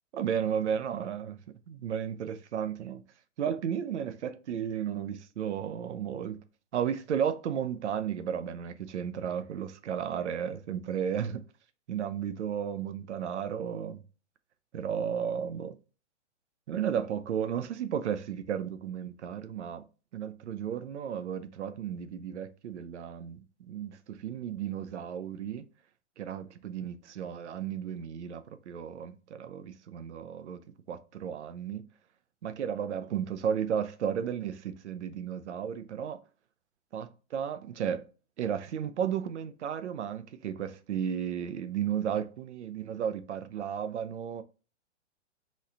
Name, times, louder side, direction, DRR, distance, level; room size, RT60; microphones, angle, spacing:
voice 1, 0.1-3.0 3.4-6.4 6.7-11.4 11.9-14.0 14.7-15.8 16.7-19.8 20.1-25.7 26.2-30.6 30.9-31.8 32.4-36.2 36.9-38.1 38.4-44.4, right 8 dB, 70° right, 0.7 m, -34 dB
4.3 x 3.1 x 3.7 m
hypercardioid pair, 140°, 36 cm